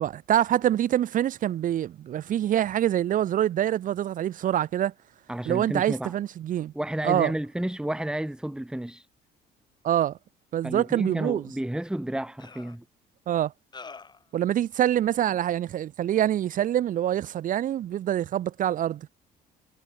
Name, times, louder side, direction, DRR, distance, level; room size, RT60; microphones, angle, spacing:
voice 1, 0.0-4.9 5.5-6.7 7.0-7.3 9.8-10.2 10.5-11.4 13.3-13.5 14.3-19.1, right 11 dB, 50° right, 0.7 m, -25 dB
voice 2, 5.3-6.1 6.7-9.1 10.6-12.8, right 1 dB, 5° right, 3.9 m, -31 dB
sound 1, 11.4-11.5 12.4-12.8 13.7-14.3, left 4 dB, 25° left, 5.6 m, -44 dB
cardioid pair, 110°, 17 cm